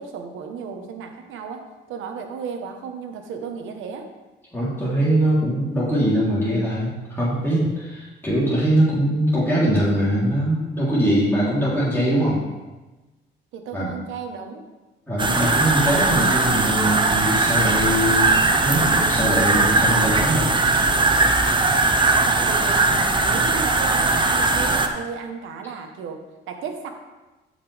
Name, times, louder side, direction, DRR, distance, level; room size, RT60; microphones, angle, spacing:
voice 1, 0.0-4.1 13.5-14.7 22.3-26.9, right 6 dB, 85° right, 5 dB, 1.3 m, -34 dB
voice 2, 4.5-12.4 13.7-13.9 15.1-18.4 18.6-20.5, right 1 dB, 10° left, -9 dB, 3.5 m, -22 dB
sound 1, 15.2-24.9, right 3 dB, 25° right, 1.0 m, -19 dB
15.0 x 5.8 x 3.5 m, 1.1 s
cardioid pair, 90°, 20 cm